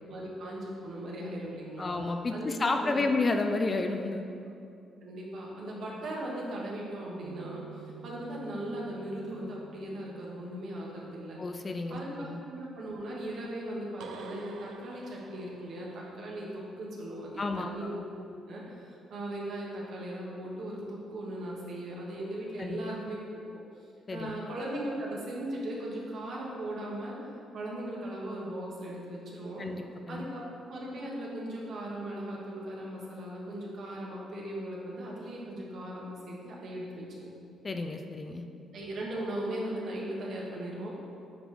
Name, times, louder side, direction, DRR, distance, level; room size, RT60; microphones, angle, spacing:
voice 1, 0.0-1.9 2.3-3.1 5.0-11.4 11.9-18.0 18.5-23.6 24.1-27.2 27.5-29.7 30.1-37.3 38.7-41.0, right 1 dB, 60° right, -4 dB, 1.6 m, -38 dB
voice 2, 1.8-4.2 11.4-12.4 17.4-17.7 22.6-22.8 24.1-24.4 29.6-30.2 37.6-38.4, left 3 dB, 25° left, 5 dB, 0.4 m, -31 dB
sound 1, 7.2-11.5 14.0-16.3, right 6 dB, 80° right, 0.5 m, -49 dB
8.7 x 5.0 x 3.6 m, 2.5 s
cardioid pair, 135°, 0 cm